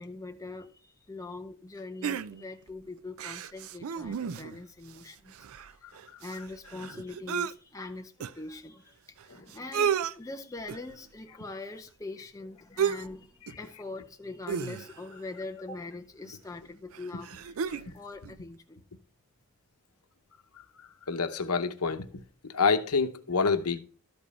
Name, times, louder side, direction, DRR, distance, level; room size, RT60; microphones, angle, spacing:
voice 1, 0.0-5.3 5.7-17.5 17.9-18.8, left 2 dB, 15° left, 0.6 m, -42 dB
sound 1, 2.0-2.7 3.2-4.6 5.0-5.1 5.3-7.5 8.2-8.3 9.2-9.3 9.5-10.1 10.7-11.0 12.8-13.2 13.5-13.7 14.5-15.1 16.2-16.3 16.9-17.9 18.3-18.4, right 7 dB, 70° right, 0.4 m, -32 dB
voice 2, 21.1-22.1 22.4-23.8, left 4 dB, 85° left, 0.9 m, -27 dB
12.5 x 5.3 x 4.2 m
head